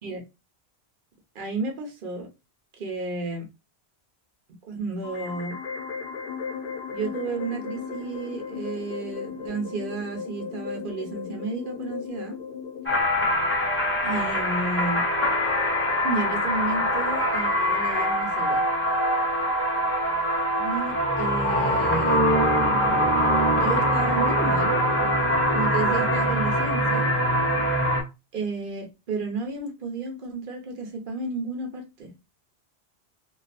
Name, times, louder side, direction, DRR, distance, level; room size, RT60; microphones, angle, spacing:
voice 1, 1.3-2.3 2.8-3.5 4.6-5.6 6.9-12.4 14.0-15.0 16.0-18.6 20.6-22.2 23.1-24.8 25.5-27.1 28.3-32.1, right 3 dB, 55° right, 0.9 m, -32 dB
sound 1, 5.0-13.0, left 6 dB, 75° left, 0.8 m, -36 dB
sound 2, 12.9-28.0, equal, 15° left, 0.5 m, -23 dB
2.5 x 2.3 x 2.4 m
omnidirectional pair, 1.1 m